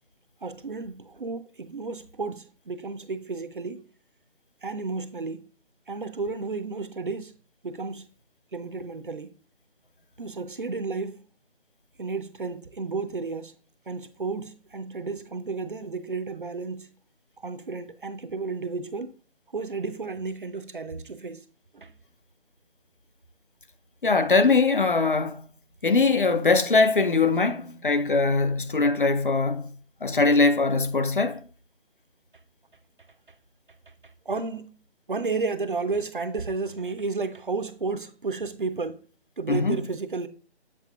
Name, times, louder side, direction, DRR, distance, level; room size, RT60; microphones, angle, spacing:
voice 1, 0.4-3.8 4.6-5.5 5.9-7.3 7.6-8.1 8.5-9.3 10.2-11.2 12.0-13.5 13.9-16.9 17.4-19.1 19.5-21.4 21.7-21.9 34.3-34.7 35.1-39.0 39.4-40.3, right 4 dB, 50° right, 0.5 m, -32 dB
voice 2, 24.0-25.4 25.8-29.7 30.0-31.4 39.5-39.8, left 3 dB, 50° left, 0.6 m, -21 dB
7.6 x 5.8 x 2.4 m
figure-of-eight pair, 160°, 34 cm